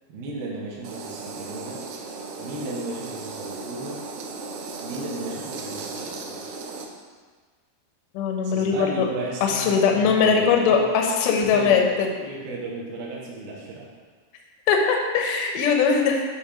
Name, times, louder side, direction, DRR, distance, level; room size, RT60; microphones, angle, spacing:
voice 1, 0.1-1.8 2.4-4.0 4.8-6.4 8.4-10.8 11.3-11.8 12.1-13.9, right 2 dB, 70° right, -4 dB, 2.6 m, -35 dB
sound 1, 0.8-6.9, right 3 dB, 85° right, 2.1 m, -36 dB
voice 2, 8.1-9.1 9.4-12.1 14.7-16.3, left 6 dB, 80° left, 2 dB, 1.9 m, -20 dB
8.6 x 3.0 x 5.0 m, 1.5 s
omnidirectional pair, 4.7 m